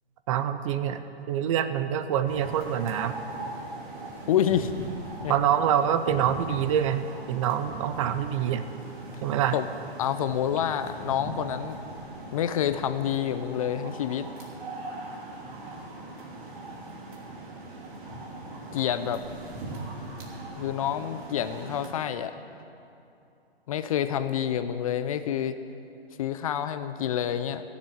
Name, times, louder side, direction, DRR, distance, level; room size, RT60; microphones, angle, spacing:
voice 1, 0.3-1.0 1.3-3.2 5.3-8.7 9.2-9.6, right 9 dB, 30° right, 10 dB, 0.6 m, -26 dB
sound 1, 2.3-21.9, right 2 dB, 50° right, 3.0 m, -40 dB
voice 2, 4.3-4.7 5.2-5.3 9.5-9.7 10.0-11.8 12.3-14.3 18.7-19.2 20.6-22.3 23.7-25.6 26.2-27.6, left 10 dB, 35° left, 11 dB, 0.5 m, -28 dB
15.0 x 7.4 x 9.4 m, 2.7 s
hypercardioid pair, 135°, 31 cm